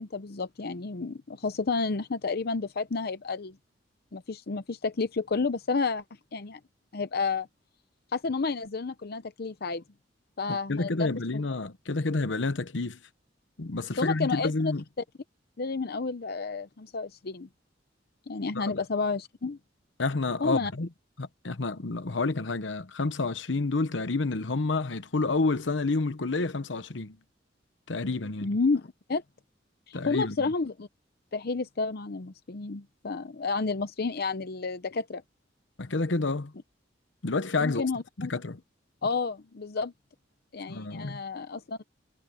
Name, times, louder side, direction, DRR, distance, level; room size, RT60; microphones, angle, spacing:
voice 1, 0.0-3.6 4.1-6.0 6.3-6.6 6.9-7.5 8.1-9.8 10.4-11.4 14.0-14.7 15.6-17.5 18.3-19.6 20.4-20.7 28.4-29.2 29.9-30.9 31.3-35.2 37.6-38.3 39.0-39.9 40.5-41.9, left 4 dB, 55° left, 0.7 m, -31 dB
voice 2, 10.5-13.0 13.6-14.8 18.5-18.7 20.0-20.9 21.2-27.2 27.9-28.5 29.9-30.4 35.8-36.5 37.2-37.9 38.2-38.6 40.7-41.2, left 3 dB, 80° left, 1.0 m, -29 dB
head